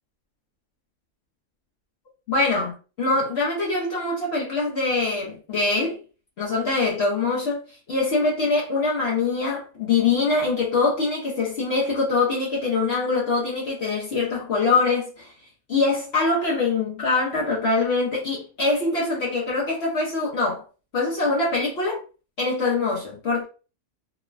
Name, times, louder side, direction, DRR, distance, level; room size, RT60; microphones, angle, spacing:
voice 1, 2.3-6.0 6.4-15.3 15.7-20.6 20.9-22.0 22.4-23.4, left 3 dB, 55° left, 0.8 m, -23 dB
3.0 x 2.1 x 2.4 m
omnidirectional pair, 1.5 m